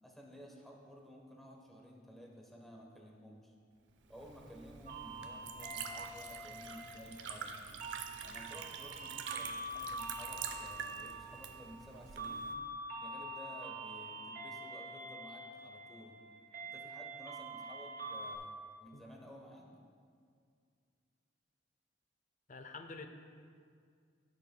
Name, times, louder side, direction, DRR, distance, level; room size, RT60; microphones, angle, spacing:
voice 1, 0.0-3.5 4.1-7.6 8.2-12.5 13.0-16.2 16.7-18.5 18.8-19.7, equal, ahead, -1 dB, 1.0 m, -54 dB
Liquid, 4.0-12.5, right 6 dB, 75° right, 0.6 m, -47 dB
sound 1, 4.9-18.4, right 2 dB, 50° right, 0.9 m, -45 dB
voice 2, 22.5-23.1, left 4 dB, 45° left, 6 dB, 0.6 m, -47 dB
15.0 x 6.6 x 2.3 m, 2.2 s
head